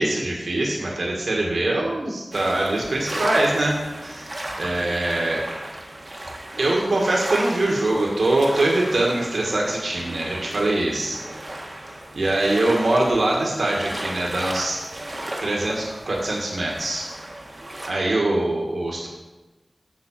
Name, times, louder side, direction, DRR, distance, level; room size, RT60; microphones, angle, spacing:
voice 1, 0.0-4.3 4.6-5.5 6.6-11.2 12.1-14.8 15.4-17.1 17.9-19.1, right 2 dB, 85° right, -2 dB, 1.6 m, -23 dB
sound 1, 2.3-17.9, right 1 dB, 35° right, 1.5 m, -35 dB
7.5 x 5.6 x 7.3 m, 1.1 s
wide cardioid pair, 65°, 0 cm